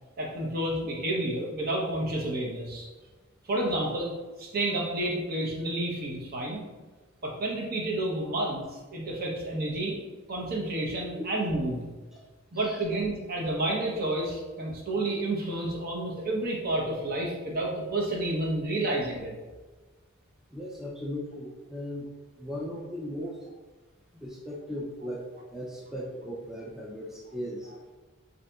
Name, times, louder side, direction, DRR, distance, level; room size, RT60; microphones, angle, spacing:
voice 1, 0.2-2.8 3.5-4.1 4.4-6.6 7.2-9.9 10.3-11.8 12.5-19.3, right 1 dB, 50° right, -2 dB, 0.7 m, -30 dB
voice 2, 20.5-22.1 22.4-23.4 24.1-25.3 25.5-27.7, equal, 5° right, -4 dB, 0.3 m, -37 dB
3.9 x 2.7 x 2.3 m, 1.2 s
head